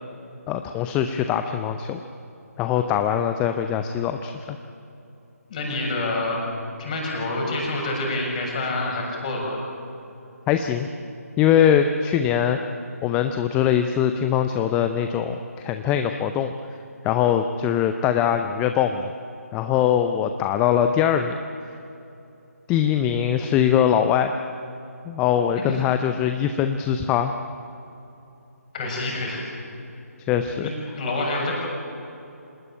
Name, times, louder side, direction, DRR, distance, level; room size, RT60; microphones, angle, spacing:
voice 1, 0.5-2.0 2.6-4.6 10.5-10.9 11.4-12.6 13.0-16.5 17.0-19.1 19.5-21.3 22.7-24.3 25.1-27.3 30.3-30.7, left 9 dB, 10° left, 7 dB, 0.5 m, -22 dB
voice 2, 5.5-6.4 6.8-9.6 25.7-25.8 28.7-29.4 30.6-31.5, left 2 dB, 25° left, -1 dB, 6.9 m, -27 dB
26.5 x 19.5 x 9.0 m, 2.8 s
figure-of-eight pair, 150°, 9 cm